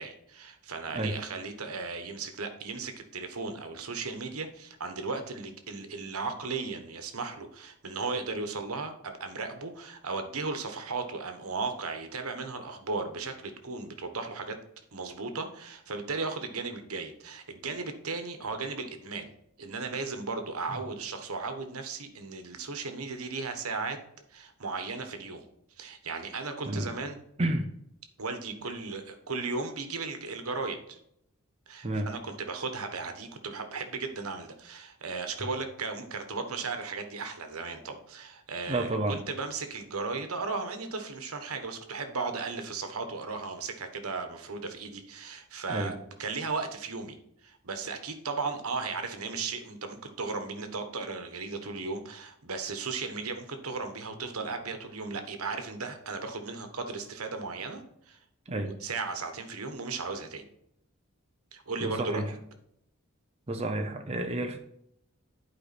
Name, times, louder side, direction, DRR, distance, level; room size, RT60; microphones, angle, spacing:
voice 1, 0.0-14.6 14.9-19.3 19.6-24.0 24.3-25.5 25.8-27.2 28.2-31.0 31.7-45.9 46.2-47.2 47.4-58.2 58.5-60.5 61.5-62.3, right 4 dB, 85° right, 7 dB, 1.3 m, -36 dB
voice 2, 38.7-39.2 45.7-45.9 58.5-58.8 61.8-62.2 63.5-64.6, right 1 dB, 30° right, 4 dB, 0.7 m, -30 dB
11.5 x 5.0 x 4.3 m, 0.74 s
head